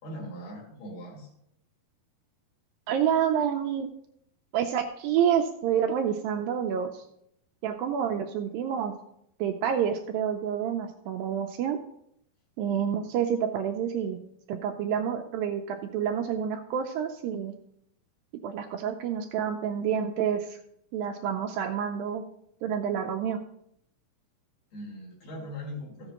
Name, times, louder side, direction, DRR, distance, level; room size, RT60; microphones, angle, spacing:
voice 1, 0.0-1.3 24.7-26.1, left 1 dB, 60° left, -2 dB, 3.8 m, -40 dB
voice 2, 2.9-3.9 4.5-7.0 7.6-8.9 9.4-11.8 12.6-14.2 14.5-17.5 18.4-20.6 20.9-22.2 22.6-23.4, right 8 dB, 80° right, 4 dB, 2.1 m, -28 dB
14.0 x 7.8 x 2.9 m, 0.74 s
omnidirectional pair, 4.4 m